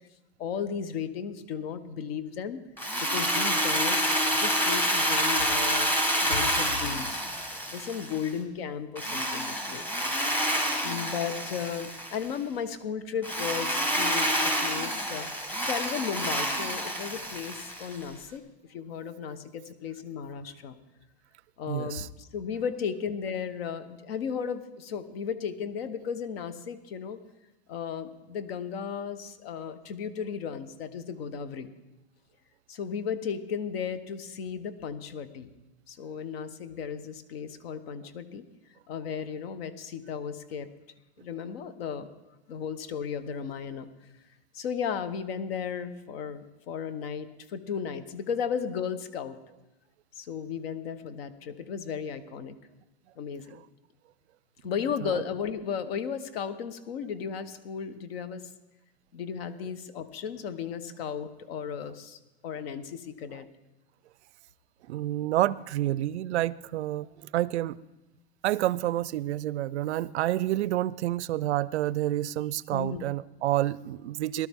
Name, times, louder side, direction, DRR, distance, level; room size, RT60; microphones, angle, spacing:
voice 1, 0.4-2.6 3.0-5.9 6.2-7.2 7.7-10.0 10.8-18.4 18.7-20.7 21.6-27.2 27.7-31.7 32.7-35.5 35.9-38.4 38.9-40.7 41.2-42.1 42.5-43.9 44.5-49.4 50.1-52.5 53.2-53.6 54.6-58.4 59.1-63.5 72.7-73.0, left 7 dB, 60° left, 13 dB, 1.1 m, -35 dB
Drill, 2.8-8.3 9.0-12.3 13.2-18.0, equal, 5° left, 1.2 m, -28 dB
voice 2, 21.7-22.1 55.0-55.1 64.9-67.8 68.4-74.5, right 14 dB, 80° right, 20 dB, 0.5 m, -29 dB
18.5 x 12.5 x 3.6 m, 1.0 s
supercardioid pair, 150°, 33 cm